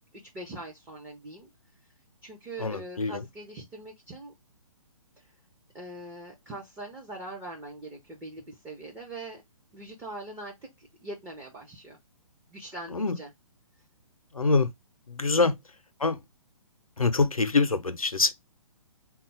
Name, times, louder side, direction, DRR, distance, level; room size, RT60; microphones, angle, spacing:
voice 1, 0.1-1.5 2.2-4.3 5.2-5.3 5.7-9.4 9.7-12.0 12.5-13.3, right 2 dB, 5° right, 0.4 m, -42 dB
voice 2, 2.6-3.2 12.9-13.1 14.3-14.7 15.1-15.5 16.0-16.2 17.0-18.3, left 4 dB, 80° left, 0.6 m, -25 dB
3.8 x 2.3 x 4.0 m
figure-of-eight pair, 130°, 18 cm